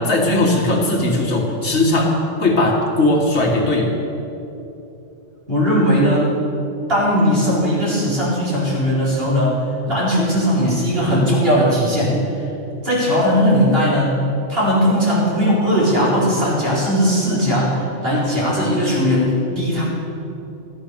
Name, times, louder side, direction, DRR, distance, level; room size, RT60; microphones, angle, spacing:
voice 1, 0.0-3.9, left 2 dB, 70° left, 0 dB, 2.1 m, -18 dB
voice 2, 5.5-6.3 6.9-9.6 9.9-12.4 12.8-14.2 14.5-19.8, equal, 55° right, -8 dB, 4.7 m, -18 dB
13.5 x 10.5 x 6.9 m, 2.9 s
omnidirectional pair, 1.2 m